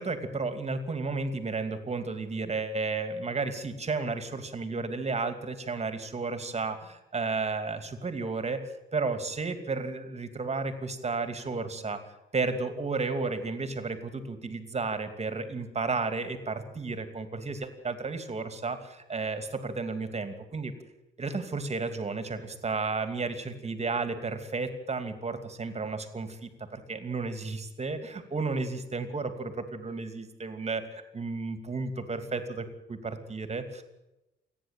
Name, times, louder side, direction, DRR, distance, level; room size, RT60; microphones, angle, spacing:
voice 1, 0.0-12.0 12.3-20.7 21.2-33.8, right 4 dB, 35° right, 9 dB, 2.8 m, -33 dB
28.0 x 10.5 x 9.2 m, 0.94 s
cardioid pair, 90°, 20 cm